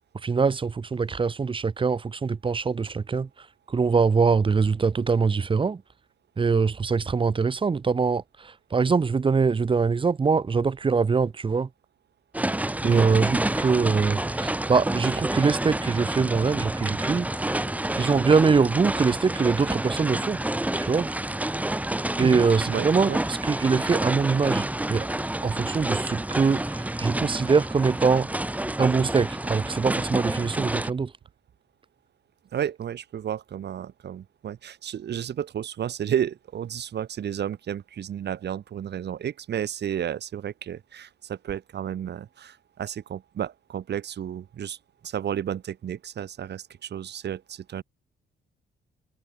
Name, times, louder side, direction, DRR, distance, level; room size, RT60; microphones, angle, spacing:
voice 1, 0.2-3.3 3.7-5.8 6.4-11.7 12.8-17.3 18.0-20.4 20.8-21.1 22.2-25.1 25.4-28.3 28.8-31.1, right 5 dB, 25° right, 0.7 m, -23 dB
sound 1, 12.3-30.9, right 1 dB, 5° right, 1.2 m, -29 dB
voice 2, 22.2-23.2 32.5-44.8 45.0-47.8, right 9 dB, 60° right, 1.9 m, -32 dB
cardioid pair, 90°, 20 cm